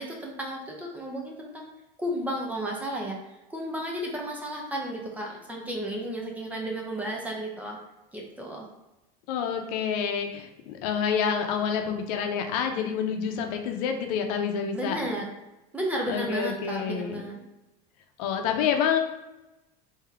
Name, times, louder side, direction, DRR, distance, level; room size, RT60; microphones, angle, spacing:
voice 1, 0.0-1.7 2.0-3.2 3.5-7.8 8.1-8.7 14.7-15.3 15.7-17.4, right 1 dB, 5° right, -1 dB, 0.5 m, -33 dB
voice 2, 9.3-15.0 16.1-17.2 18.2-19.0, left 7 dB, 70° left, 4 dB, 0.6 m, -28 dB
3.5 x 2.7 x 3.4 m, 0.99 s
cardioid pair, 160°, 20 cm